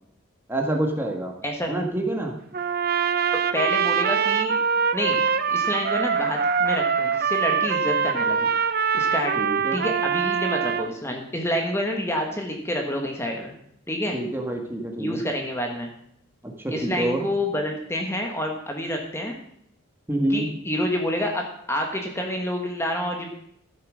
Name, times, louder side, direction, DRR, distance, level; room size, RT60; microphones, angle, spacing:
voice 1, 0.5-1.3 1.7-2.3 9.3-9.8 14.1-15.2 16.6-17.2 20.1-20.5, right 1 dB, 10° right, 2 dB, 1.6 m, -26 dB
Trumpet, 2.5-10.9, right 6 dB, 45° right, 0.6 m, -23 dB
voice 2, 3.5-4.5 4.9-5.2 5.5-8.5 8.9-9.4 9.7-13.5 13.9-14.2 15.0-15.9 16.7-19.4 20.3-23.3, left 1 dB, 10° left, 2 dB, 1.5 m, -28 dB
14.0 x 7.6 x 6.3 m, 0.71 s
head